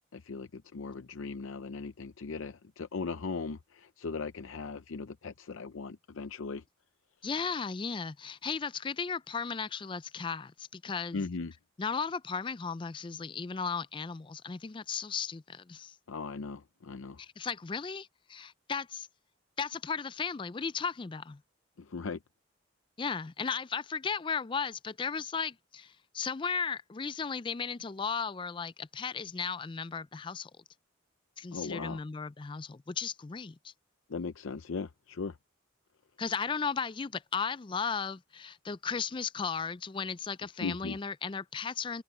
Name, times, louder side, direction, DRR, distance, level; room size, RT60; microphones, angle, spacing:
voice 1, 0.1-6.6 11.1-11.5 16.1-17.2 21.8-22.2 31.5-32.0 34.1-35.4 40.6-41.0, left 4 dB, 85° left, 0.6 m, -38 dB
voice 2, 7.2-11.2 11.8-15.9 17.2-19.1 19.6-21.4 23.0-30.5 31.4-33.7 36.2-42.0, left 5 dB, 25° left, 0.3 m, -35 dB
open air
head